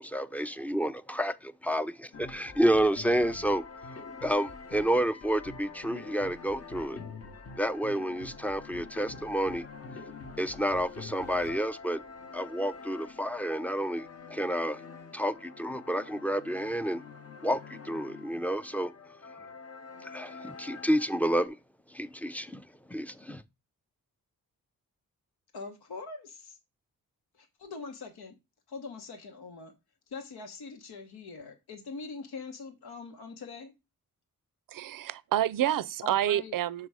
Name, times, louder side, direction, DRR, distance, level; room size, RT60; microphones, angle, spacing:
voice 1, 0.0-7.1 7.6-9.7 10.4-12.0 12.3-14.8 15.1-17.0 17.4-18.9 19.3-19.4 20.0-21.6 21.9-23.4, equal, 5° left, 0.5 m, -30 dB
sound 1, 2.1-21.5, left 4 dB, 40° left, 0.9 m, -46 dB
voice 2, 25.5-26.6 27.3-28.4 28.7-29.7 30.1-33.7 36.0-36.6, left 4 dB, 85° left, 1.1 m, -43 dB
voice 3, 34.7-36.9, right 12 dB, 60° right, 0.5 m, -28 dB
6.2 x 4.0 x 4.8 m
cardioid pair, 50°, 37 cm